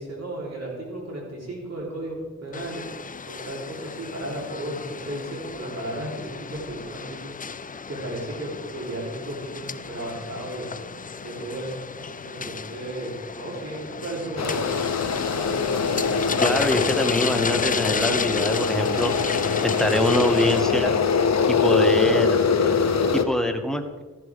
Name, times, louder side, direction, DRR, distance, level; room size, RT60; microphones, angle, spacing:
voice 1, 0.0-2.9 3.2-7.3 7.9-10.7 11.2-11.7 12.2-14.9, right 1 dB, 60° right, -3 dB, 3.6 m, -34 dB
sound 1, 2.5-20.6, left 5 dB, 30° left, 0.4 m, -33 dB
sound 2, 14.4-23.2, left 5 dB, 65° left, 0.8 m, -23 dB
voice 2, 16.4-19.1 19.6-20.9 21.5-22.4 23.1-24.0, left 1 dB, ahead, 5 dB, 1.0 m, -24 dB
14.0 x 11.0 x 3.6 m, 1.3 s
wide cardioid pair, 95°, 29 cm